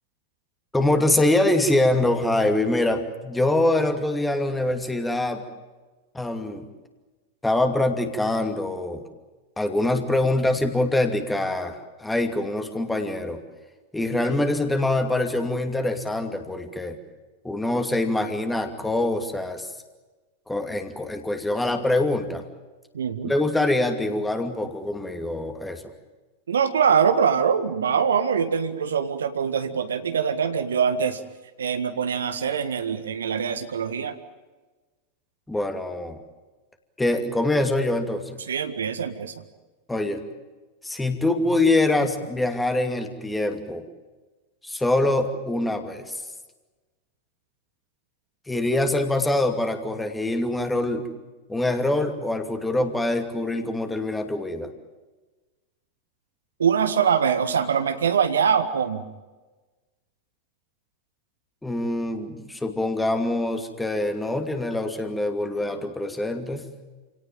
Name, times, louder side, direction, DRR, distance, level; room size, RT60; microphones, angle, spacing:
voice 1, 0.7-5.4 6.1-6.7 7.4-9.0 9.6-13.4 13.9-17.0 17.4-19.7 20.5-22.4 23.2-25.8 35.5-36.2 37.0-38.4 39.9-40.2 40.8-43.8 44.6-46.2 48.5-51.1 51.5-54.7 61.6-66.7, left 2 dB, 5° left, 6 dB, 2.6 m, -24 dB
voice 2, 22.9-23.3 26.5-31.2 31.6-34.1 38.5-39.4 56.6-59.0, right 7 dB, 65° right, 9 dB, 1.6 m, -23 dB
28.5 x 18.0 x 9.2 m, 1.3 s
figure-of-eight pair, 90°, 0 cm